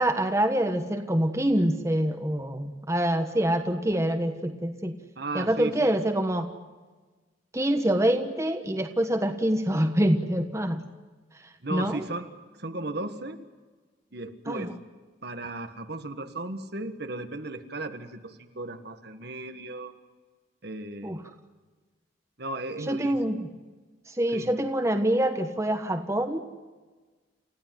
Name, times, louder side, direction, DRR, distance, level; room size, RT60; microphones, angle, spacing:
voice 1, 0.0-4.9 5.3-6.5 7.5-10.8 11.7-12.0 14.5-14.7 21.0-21.2 22.9-23.5 24.1-26.4, right 1 dB, 15° right, 6 dB, 1.3 m, -25 dB
voice 2, 5.2-6.0 11.6-12.3 12.5-13.4 14.1-14.7 15.2-19.9 20.6-21.2 22.4-23.4 24.3-24.5, right 2 dB, 55° right, 8 dB, 1.6 m, -36 dB
29.5 x 15.5 x 9.3 m, 1.3 s
head